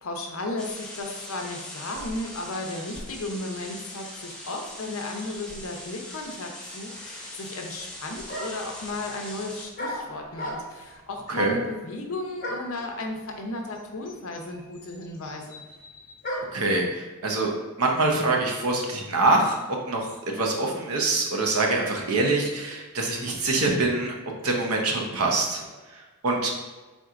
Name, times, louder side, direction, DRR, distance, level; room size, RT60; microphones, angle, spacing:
voice 1, 0.0-15.6, left 2 dB, 65° left, 2 dB, 0.6 m, -34 dB
sound 1, 0.6-9.7, left 1 dB, 5° left, 0.7 m, -41 dB
sound 2, 7.8-7.9 8.3-8.7 9.8-10.9 12.4-12.8 13.7-13.8 14.0-16.7, equal, 40° left, 1.0 m, -35 dB
voice 2, 16.5-17.5 17.8-19.6 19.9-24.1 24.4-25.6 26.2-26.5, right 2 dB, 75° right, 1 dB, 0.7 m, -24 dB
4.4 x 3.8 x 2.4 m, 1.3 s
head